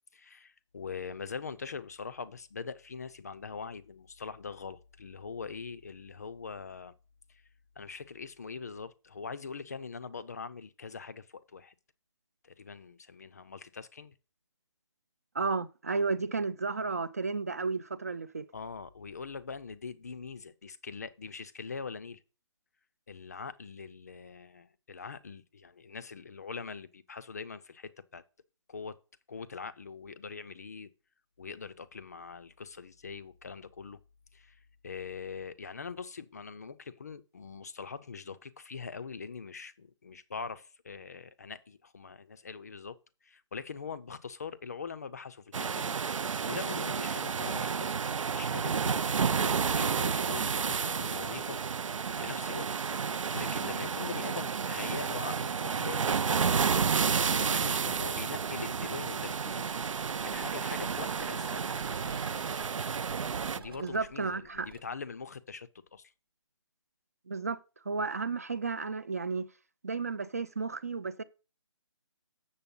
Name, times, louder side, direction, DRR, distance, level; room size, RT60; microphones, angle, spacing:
voice 1, 0.1-6.9 7.3-7.4 7.8-11.7 12.4-14.1 18.5-22.2 23.1-28.2 28.7-29.0 29.3-30.9 31.4-34.0 34.3-43.0 43.2-46.0 46.4-51.6 52.2-52.7 53.1-56.4 57.2-59.7 60.2-61.7 63.5-66.1, left 5 dB, 30° left, 0.4 m, -43 dB
voice 2, 15.3-18.5 63.8-64.7 67.3-67.6 67.9-69.5 69.8-71.2, right 4 dB, 30° right, 0.3 m, -33 dB
sound 1, 45.5-63.6, right 6 dB, 85° right, 0.5 m, -31 dB
sound 2, 59.3-64.8, right 5 dB, 50° right, 1.0 m, -48 dB
7.1 x 6.7 x 5.3 m
hypercardioid pair, 170°, 16 cm